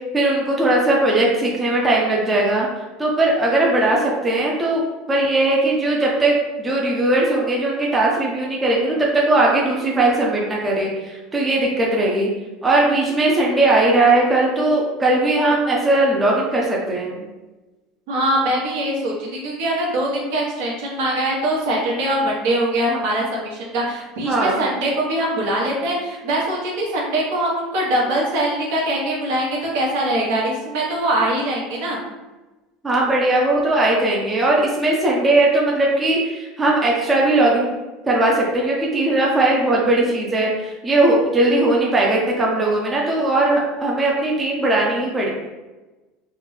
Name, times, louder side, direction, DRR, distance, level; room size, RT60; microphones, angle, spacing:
voice 1, 0.1-2.7 3.0-12.3 12.6-17.3 24.2-24.6 32.8-37.8 38.1-45.3, right 2 dB, 15° right, -3 dB, 0.5 m, -19 dB
voice 2, 18.1-32.0, right 1 dB, 75° right, -3 dB, 1.1 m, -22 dB
3.4 x 2.1 x 3.1 m, 1.1 s
cardioid pair, 155°, 0 cm